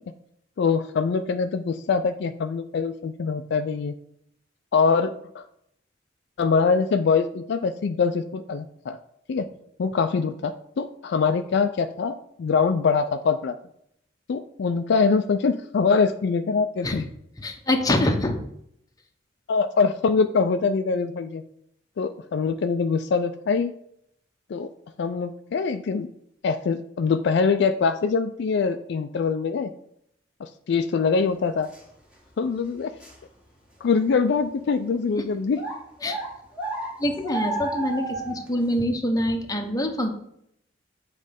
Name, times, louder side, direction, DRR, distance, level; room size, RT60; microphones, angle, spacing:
voice 1, 0.6-3.9 4.7-5.4 6.4-9.0 9.3-9.5 9.8-13.5 14.3-17.1 19.5-21.4 22.0-23.7 24.5-24.7 25.0-26.1 26.4-29.7 30.4-31.7 32.4-32.9 33.8-35.6, left 5 dB, 60° left, 9 dB, 0.4 m, -23 dB
voice 2, 17.4-18.4 35.2-35.3 36.0-36.2 37.0-40.1, left 1 dB, 20° left, 3 dB, 0.8 m, -25 dB
sound 1, 31.7-31.8 32.3-32.4 33.0-33.2 33.8-33.9 34.6-34.7 35.5-38.5, right 2 dB, 5° right, 1.6 m, -32 dB
7.4 x 3.2 x 5.2 m, 0.72 s
head